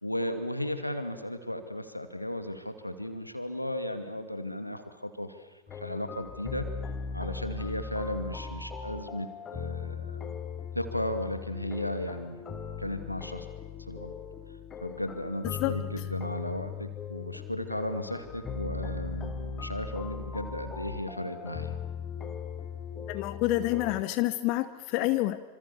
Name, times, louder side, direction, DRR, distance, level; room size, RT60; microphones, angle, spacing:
voice 1, 0.0-6.7 7.1-10.2 10.7-12.4 12.8-13.5 13.9-14.1 14.8-21.7, left 1 dB, 90° left, 8 dB, 2.5 m, -35 dB
sound 1, 5.7-24.0, left 6 dB, 25° left, 2.5 m, -38 dB
voice 2, 23.1-25.4, left 16 dB, 45° left, 12 dB, 1.1 m, -28 dB
27.0 x 26.5 x 7.1 m, 1.2 s
figure-of-eight pair, 90°, 0 cm